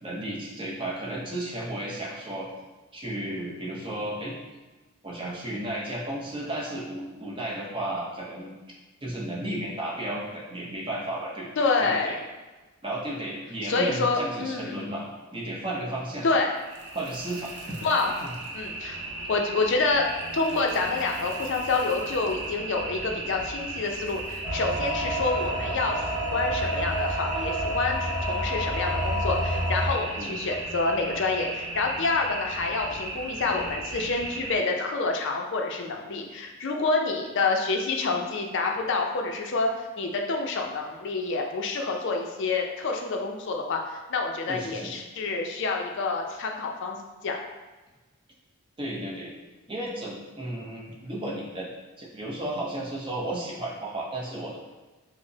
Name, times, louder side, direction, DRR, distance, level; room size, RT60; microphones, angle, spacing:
voice 1, 0.0-2.5 2.9-4.4 5.0-8.5 9.0-12.1 12.8-16.3 16.9-17.8 18.2-18.4 30.2-30.4 44.5-44.9 48.8-49.3 49.7-51.7 52.0-54.6, right 1 dB, 20° right, -4 dB, 0.6 m, -33 dB
voice 2, 11.6-12.2 13.6-14.7 16.2-16.5 17.8-18.1 18.5-19.0 19.3-20.1 20.3-47.0 47.2-47.4, left 3 dB, 55° left, 2 dB, 0.4 m, -27 dB
sound 1, 16.5-34.5, right 2 dB, 90° right, 0.6 m, -36 dB
sound 2, 24.4-29.9, right 1 dB, 25° left, 0.9 m, -29 dB
4.9 x 2.0 x 2.7 m, 1.2 s
head